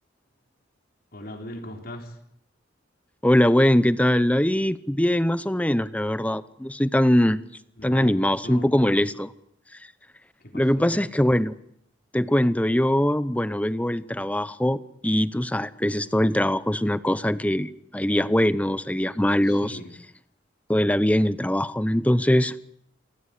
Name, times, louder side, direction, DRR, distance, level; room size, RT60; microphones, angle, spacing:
voice 1, 1.1-2.2 7.8-8.7 10.4-11.0 19.4-19.9, left 1 dB, 55° left, 4 dB, 3.8 m, -39 dB
voice 2, 3.2-7.4 7.8-9.3 10.5-11.5 12.1-19.8 20.7-22.6, left 1 dB, 10° left, 16 dB, 0.8 m, -22 dB
28.5 x 15.0 x 8.3 m, 0.73 s
head